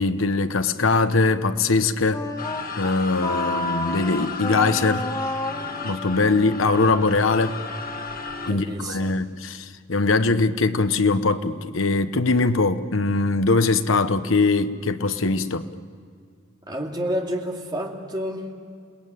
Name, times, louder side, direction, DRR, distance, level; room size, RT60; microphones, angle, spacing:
voice 1, 0.0-2.2 2.8-5.1 5.8-7.6 8.4-15.7, left 3 dB, 80° left, 1.0 m, -21 dB
Wind instrument woodwind instrument, 2.1-9.0, left 2 dB, 20° left, 1.4 m, -32 dB
sound 1, 2.4-8.5, left 5 dB, 45° left, 1.6 m, -34 dB
voice 2, 8.4-9.2 16.7-18.5, equal, 20° right, 2.7 m, -29 dB
28.0 x 19.5 x 9.1 m
head